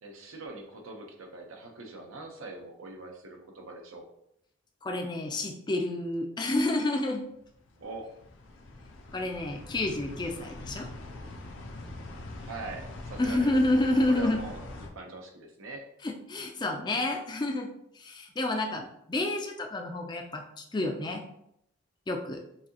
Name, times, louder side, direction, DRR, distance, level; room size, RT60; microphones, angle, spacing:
voice 1, 0.0-4.1 7.8-8.1 12.4-13.5 13.9-14.7 14.9-15.9, right 2 dB, 85° right, 2 dB, 0.8 m, -42 dB
voice 2, 4.8-7.2 9.1-10.9 13.2-14.4 16.3-21.2 22.1-22.4, left 2 dB, 20° left, 3 dB, 0.4 m, -29 dB
sound 1, 7.3-14.9, left 2 dB, 65° left, 0.7 m, -43 dB
5.9 x 2.8 x 2.9 m, 0.75 s
head